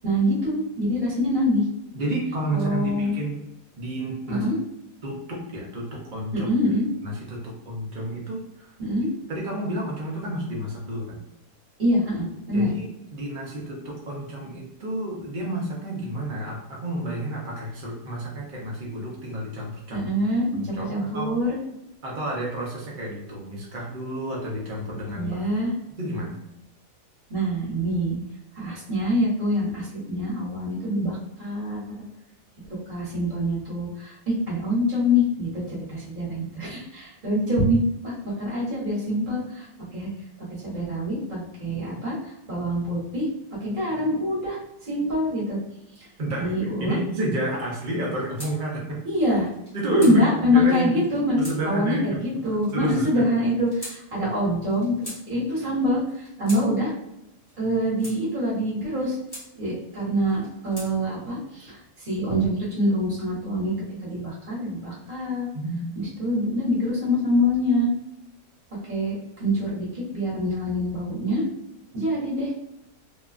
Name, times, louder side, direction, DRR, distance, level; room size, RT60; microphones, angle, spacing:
voice 1, 0.0-1.6 2.5-3.1 4.3-4.6 6.3-6.9 8.8-9.1 11.8-12.7 19.9-21.6 25.1-25.7 27.3-28.2 28.5-32.0 32.9-39.7 39.9-40.1 40.6-43.3 43.6-44.6 44.9-45.6 46.4-47.0 49.0-49.5 49.9-51.4 51.6-55.0 55.3-56.9 57.6-59.2 59.6-63.7 64.0-65.5 65.9-67.9 68.9-69.9 70.1-71.4 71.9-72.5, equal, 35° right, -7 dB, 1.1 m, -25 dB
voice 2, 1.9-3.4 3.8-4.5 5.0-6.5 7.0-8.7 9.3-11.2 12.5-20.1 20.5-21.3 22.0-25.5 26.0-26.4 46.2-46.5 46.8-49.0 49.7-50.9 51.4-52.2 52.7-53.3 65.5-65.8, right 1 dB, 85° right, -3 dB, 0.4 m, -30 dB
sound 1, 48.3-48.5 49.4-50.2 51.0-51.6 52.4-52.9 53.7-54.0 54.7-55.2 56.1-56.6 57.5-58.2 58.9-59.5 60.3-60.9, equal, 20° left, 0.8 m, -40 dB
2.8 x 2.3 x 2.4 m, 0.84 s
omnidirectional pair, 1.8 m